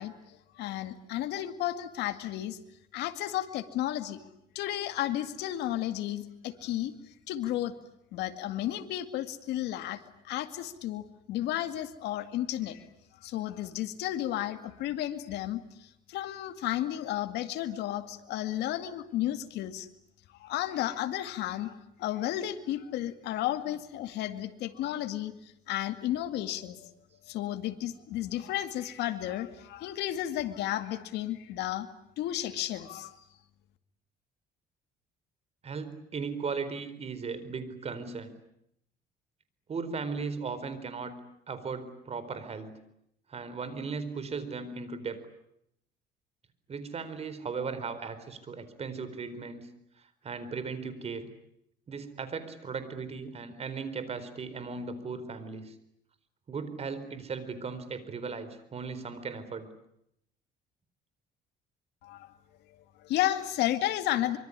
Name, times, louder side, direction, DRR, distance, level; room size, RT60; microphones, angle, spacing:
voice 1, 0.0-2.6 2.9-4.2 4.5-6.9 7.3-7.7 8.1-12.8 13.2-19.9 20.4-25.3 25.7-26.9 27.3-31.9 32.2-33.1 62.0-62.3 63.0-64.4, left 13 dB, 85° left, 8 dB, 2.3 m, -33 dB
voice 2, 35.6-38.3 39.7-41.1 41.5-42.8 43.3-45.2 46.7-49.7 50.0-51.3 51.9-55.7 56.5-59.7, right 5 dB, 40° right, 13 dB, 4.3 m, -37 dB
25.0 x 24.0 x 9.9 m, 0.77 s
cardioid pair, 110°, 17 cm